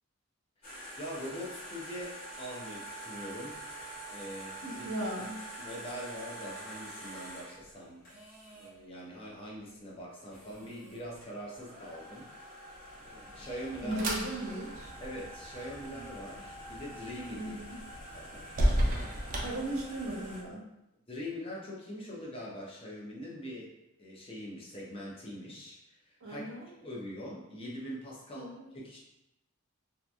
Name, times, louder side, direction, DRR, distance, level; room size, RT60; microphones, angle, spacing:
sound 1, 0.6-8.7 10.0-10.1 10.3-20.4, right 1 dB, 45° left, 1.0 m, -46 dB
voice 1, 1.0-4.9 5.6-8.0 8.5-12.5 13.0-14.0 15.0-17.6 18.0-18.6 19.3-19.6 21.1-23.7 24.0-26.4 26.8-29.0, equal, 25° left, -4 dB, 0.5 m, -43 dB
voice 2, 4.6-5.4 13.8-14.9 17.3-17.8 19.4-20.7 26.2-26.7 28.3-28.7, right 1 dB, 70° right, -2 dB, 0.7 m, -37 dB
sound 2, 13.0-20.3, equal, 35° right, 0.4 m, -35 dB
2.8 x 2.5 x 2.3 m, 0.87 s
head